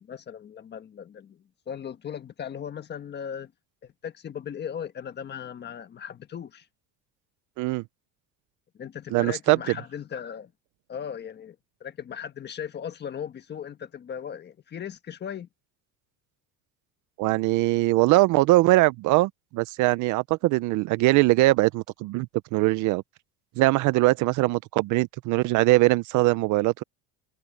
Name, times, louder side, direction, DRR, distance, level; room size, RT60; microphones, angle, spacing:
voice 1, 0.0-3.5 3.8-6.7 8.7-10.5 10.9-15.5, left 8 dB, 25° left, 1.4 m, -37 dB
voice 2, 9.1-9.6 17.2-22.3 22.5-23.0 23.6-26.8, right 20 dB, 50° right, 0.5 m, -21 dB
cardioid pair, 150°, 40 cm